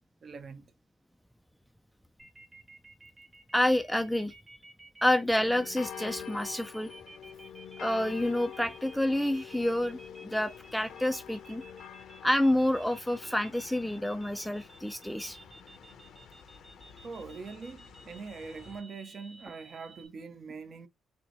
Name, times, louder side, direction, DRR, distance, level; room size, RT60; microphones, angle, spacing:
voice 1, 0.2-0.7 17.0-20.9, right 4 dB, 45° right, 0.7 m, -43 dB
sound 1, 2.2-20.1, right 2 dB, 25° right, 1.1 m, -53 dB
voice 2, 3.5-4.3 5.0-6.9 7.8-11.6 12.2-15.4, left 1 dB, ahead, 0.4 m, -28 dB
sound 2, 5.3-18.8, left 8 dB, 65° left, 0.7 m, -47 dB
4.3 x 2.1 x 2.9 m
cardioid pair, 90°, 0 cm